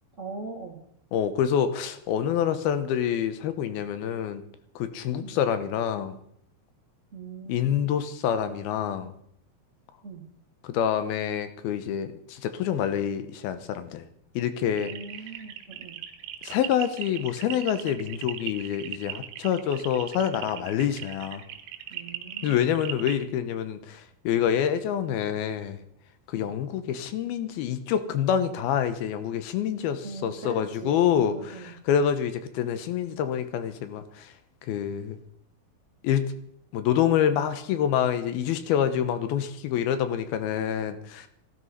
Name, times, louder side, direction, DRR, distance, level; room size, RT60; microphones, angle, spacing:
voice 1, 0.2-0.8 5.2-5.4 7.1-7.9 10.0-10.3 14.8-16.0 21.9-22.6 26.3-26.5 30.0-31.0 31.3-31.8, right 3 dB, 25° right, 0 dB, 1.9 m, -40 dB
voice 2, 1.1-4.4 4.8-6.2 7.5-9.1 10.6-14.0 14.4-14.9 16.4-21.4 22.4-25.8 26.3-34.3 34.6-35.2 36.0-36.3 36.7-41.3, left 9 dB, 80° left, 10 dB, 2.9 m, -27 dB
sound 1, 14.8-23.2, right 13 dB, 80° right, 3.0 m, -38 dB
16.0 x 12.5 x 5.5 m, 0.69 s
omnidirectional pair, 4.4 m